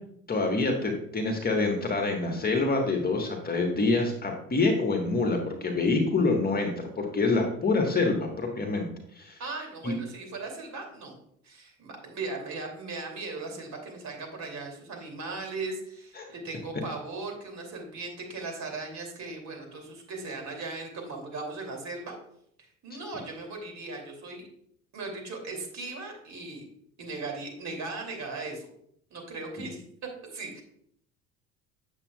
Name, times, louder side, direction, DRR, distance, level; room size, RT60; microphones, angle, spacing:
voice 1, 0.3-8.9 9.1-9.4 9.8-9.9 16.2-16.3 22.9-23.0, left 3 dB, 20° left, 1 dB, 1.6 m, -26 dB
voice 2, 9.4-11.1 11.4-22.2 22.6-24.4 24.9-26.6 27.0-28.7 29.1-30.6, right 3 dB, 40° right, 2 dB, 3.0 m, -38 dB
8.7 x 7.4 x 2.4 m, 0.69 s
figure-of-eight pair, 65°, 42 cm